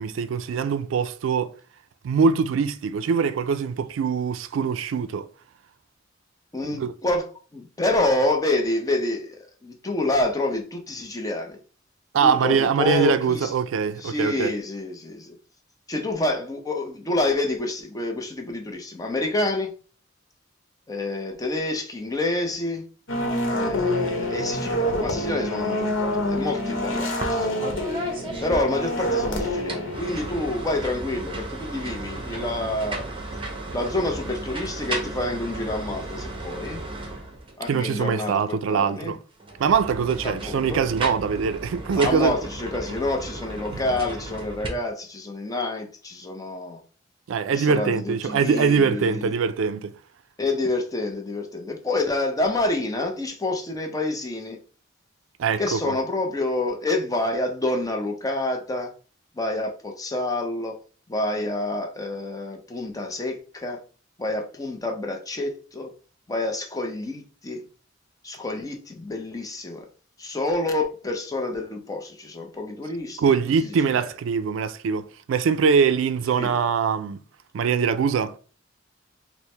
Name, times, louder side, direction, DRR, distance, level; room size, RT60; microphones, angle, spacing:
voice 1, 0.0-1.5 2.0-5.3 6.8-6.9 12.1-14.5 37.7-39.2 39.6-42.3 47.3-49.9 55.4-55.9 73.2-77.2 77.5-78.4, right 6 dB, 80° right, 0.3 m, -23 dB
voice 2, 6.5-7.3 7.5-11.6 12.2-13.5 14.0-15.4 15.9-19.7 20.9-22.8 23.5-27.9 28.4-33.1 33.7-36.8 37.6-39.1 40.2-40.8 42.0-46.8 47.5-49.3 50.4-54.6 55.6-58.9 59.4-60.8 61.1-63.8 64.2-65.9 66.3-67.6 68.2-69.9 70.2-73.3 73.6-74.0 76.4-76.6, left 2 dB, 20° left, 0.6 m, -28 dB
sound 1, 23.1-30.6, left 1 dB, 90° left, 0.9 m, -27 dB
sound 2, 27.2-27.4 27.6-29.2 29.6-37.6 39.4-44.7, right 2 dB, 25° right, 0.7 m, -34 dB
4.5 x 2.1 x 3.2 m
head